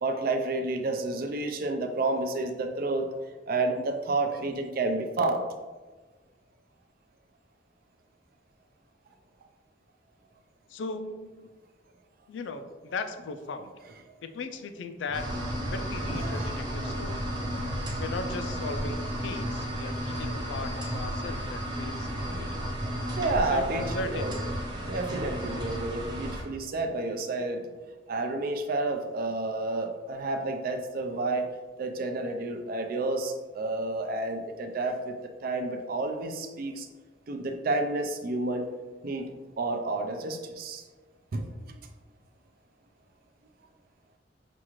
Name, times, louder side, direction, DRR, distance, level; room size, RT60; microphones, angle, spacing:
voice 1, 0.0-3.1 3.5-5.4 16.1-16.6 23.2-24.4 24.8-27.7 28.1-31.5 31.8-36.9 37.3-38.7 39.0-39.3 39.6-40.8 41.3-41.8, right 2 dB, 55° right, 6 dB, 0.5 m, -30 dB
voice 2, 10.7-11.5 12.3-13.7 14.2-15.2 15.7-17.3 18.0-22.7 23.5-24.4, left 3 dB, 80° left, 9 dB, 0.4 m, -37 dB
sound 1, 15.1-26.4, equal, 25° right, 0.7 m, -33 dB
6.0 x 2.4 x 3.0 m, 1.3 s
head